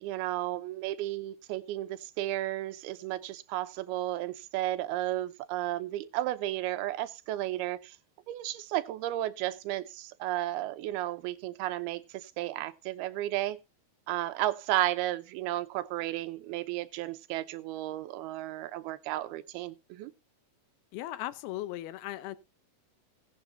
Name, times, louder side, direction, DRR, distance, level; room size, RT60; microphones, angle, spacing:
voice 1, 0.0-8.0 8.3-13.6 14.1-20.1, right 15 dB, 90° right, 2.7 m, -33 dB
voice 2, 20.9-22.4, left 15 dB, 90° left, 2.8 m, -37 dB
17.0 x 9.5 x 2.7 m
omnidirectional pair, 4.3 m